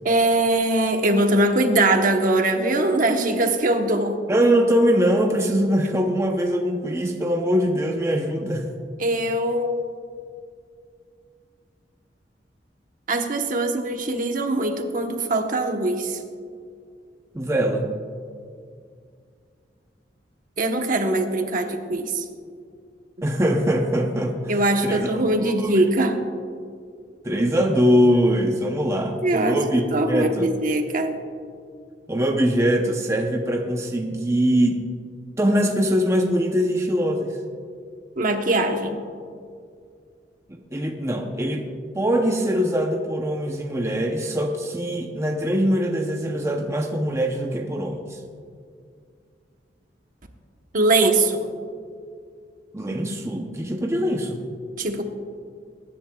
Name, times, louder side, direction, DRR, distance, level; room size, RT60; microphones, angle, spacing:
voice 1, 0.0-4.2 9.0-10.0 13.1-16.2 20.6-22.3 24.5-26.3 29.2-29.6 29.9-31.2 38.2-39.0 50.7-51.5 54.8-55.0, right 2 dB, 50° right, 5 dB, 1.0 m, -22 dB
voice 2, 4.3-8.7 17.3-18.0 23.2-25.1 25.4-25.7 27.2-30.5 32.1-34.8 35.4-37.4 40.5-41.7 41.9-48.2 52.7-54.4, equal, 15° right, 2 dB, 0.7 m, -22 dB
22.0 x 10.5 x 2.3 m, 2.2 s
head